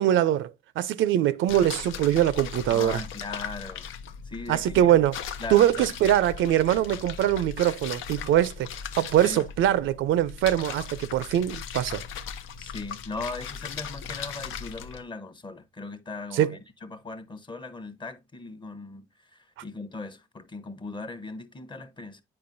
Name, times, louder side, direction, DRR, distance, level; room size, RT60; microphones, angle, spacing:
voice 1, 0.0-3.0 4.5-5.2 5.5-8.7 9.0-12.0 16.3-16.5, right 12 dB, 80° right, 0.5 m, -23 dB
sound 1, 1.5-15.0, left 7 dB, 85° left, 0.6 m, -38 dB
voice 2, 2.7-3.9 4.3-5.0 5.4-5.9 9.2-9.4 12.6-19.0 19.6-22.2, left 3 dB, 25° left, 0.8 m, -38 dB
8.7 x 5.0 x 2.6 m
cardioid pair, 90°, 20 cm